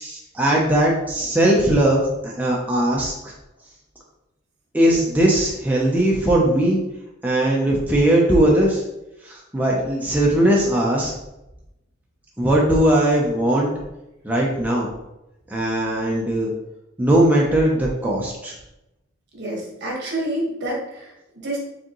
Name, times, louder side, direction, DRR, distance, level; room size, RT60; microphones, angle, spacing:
voice 1, 0.0-3.3 4.7-6.8 7.2-8.8 9.2-11.1 12.4-13.7 14.2-14.9 15.5-16.5 17.0-18.6, right 1 dB, 10° right, -3 dB, 0.6 m, -19 dB
voice 2, 19.3-21.6, right 1 dB, 55° right, -2 dB, 1.4 m, -28 dB
4.9 x 3.6 x 3.0 m, 0.92 s
head